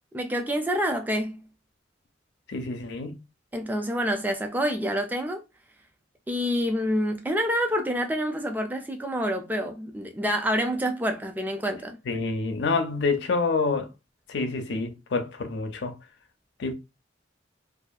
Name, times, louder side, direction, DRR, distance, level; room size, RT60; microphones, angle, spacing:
voice 1, 0.1-1.4 3.5-5.4 6.3-12.0, equal, 10° right, 0.4 m, -27 dB
voice 2, 2.5-3.2 12.1-13.9 14.3-15.9 16.6-16.7, left 3 dB, 65° left, 0.5 m, -27 dB
2.6 x 2.4 x 2.3 m
head